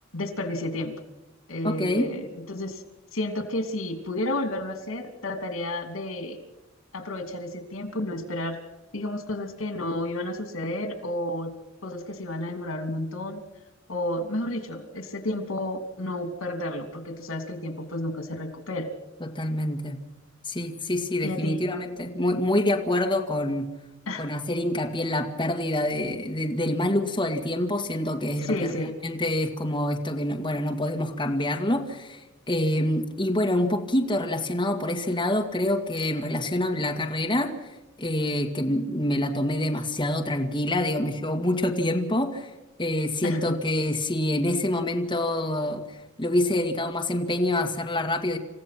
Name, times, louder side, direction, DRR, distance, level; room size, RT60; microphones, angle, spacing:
voice 1, 0.1-0.9 1.5-2.8 3.1-6.4 6.9-8.6 8.9-11.5 11.8-13.4 13.9-18.9 21.2-21.6 24.1-24.3 28.4-28.9 43.2-43.6, left 1 dB, 90° left, 8 dB, 2.9 m, -31 dB
voice 2, 1.6-2.1 19.2-20.0 20.5-23.7 24.2-37.5 38.0-42.5 42.8-48.4, left 1 dB, 25° left, 2 dB, 2.0 m, -26 dB
28.5 x 15.5 x 6.0 m, 1.0 s
head